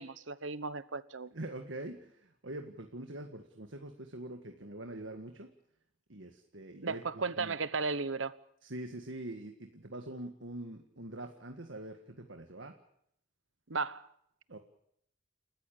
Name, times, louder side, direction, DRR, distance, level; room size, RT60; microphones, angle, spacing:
voice 1, 0.0-1.3 6.8-8.3 13.7-14.1, right 4 dB, 85° right, 1.1 m, -35 dB
voice 2, 1.3-5.5 6.1-7.6 8.6-12.8 14.5-14.6, right 1 dB, 70° right, 1.8 m, -44 dB
29.5 x 14.5 x 8.7 m
head